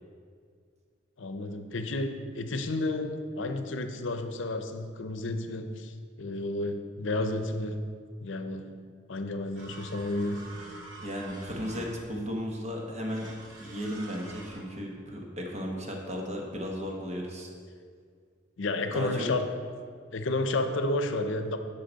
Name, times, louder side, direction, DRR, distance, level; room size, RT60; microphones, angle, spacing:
voice 1, 1.2-7.8 8.2-8.8 9.1-10.4 18.6-19.5 20.1-21.6, left 2 dB, 75° left, 8 dB, 0.6 m, -31 dB
sound 1, 9.5-12.2 13.1-14.6, right 2 dB, 85° right, 2.2 m, -46 dB
voice 2, 11.0-13.3 13.6-17.5 18.9-19.3, equal, 35° right, 0 dB, 1.1 m, -35 dB
10.5 x 5.6 x 4.0 m, 2.1 s
head